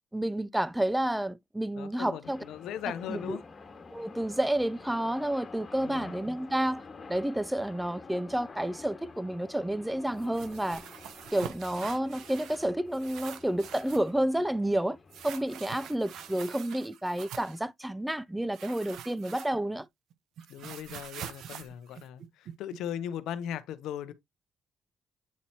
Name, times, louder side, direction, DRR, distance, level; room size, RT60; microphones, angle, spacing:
voice 1, 0.1-2.4 3.1-3.4 3.9-6.8 7.1-10.8 11.3-15.0 15.2-19.9, right 1 dB, 5° right, 0.4 m, -30 dB
voice 2, 1.7-3.4 5.8-6.1 20.5-24.1, left 10 dB, 85° left, 0.6 m, -38 dB
sound 1, 2.2-16.5, left 4 dB, 35° left, 1.6 m, -49 dB
sound 2, 10.2-12.7 12.9-14.1 15.1-17.6 18.5-19.8 20.1-22.8, right 9 dB, 80° right, 0.7 m, -45 dB
8.4 x 4.2 x 2.8 m
cardioid pair, 90°, 0 cm